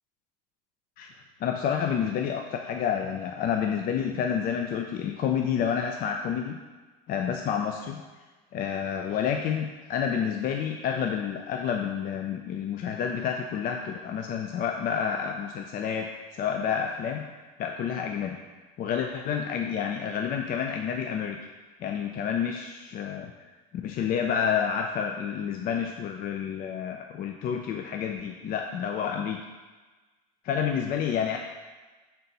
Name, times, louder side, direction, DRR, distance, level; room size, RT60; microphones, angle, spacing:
voice 1, 1.4-6.6 7.1-8.0 8.5-17.3 17.6-18.4 18.8-21.4 21.8-23.3 23.8-29.4 30.4-31.4, left 7 dB, 45° left, 3 dB, 0.5 m, -29 dB
4.4 x 4.0 x 5.3 m, 1.3 s
supercardioid pair, 110°, 20 cm